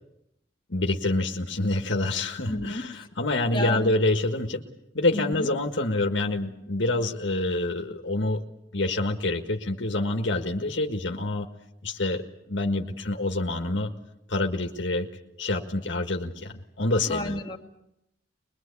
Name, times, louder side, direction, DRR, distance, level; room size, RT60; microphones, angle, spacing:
voice 1, 0.7-4.6 4.9-8.4 8.7-11.5 11.8-13.9 14.3-15.1 15.4-17.4, left 2 dB, 70° left, 1.7 m, -27 dB
voice 2, 2.5-2.9 3.5-3.9 5.1-5.5 17.1-17.6, left 1 dB, 25° left, 2.3 m, -31 dB
22.5 x 22.5 x 8.4 m
head